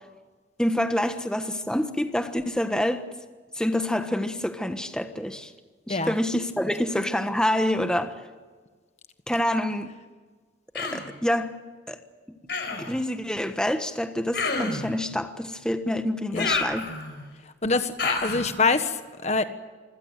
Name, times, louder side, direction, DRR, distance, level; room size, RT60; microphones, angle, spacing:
voice 1, 0.6-3.0 3.6-5.5 5.9-8.2 9.3-9.9 10.7-11.6 11.9-12.0 12.8-16.9, left 1 dB, 5° left, 1.3 m, -27 dB
Human voice, 10.7-11.1 12.5-12.9 14.3-14.9 16.3-17.2 18.0-18.5, left 4 dB, 65° left, 4.7 m, -29 dB
voice 2, 17.6-19.4, left 3 dB, 35° left, 1.5 m, -25 dB
26.5 x 16.0 x 9.0 m
head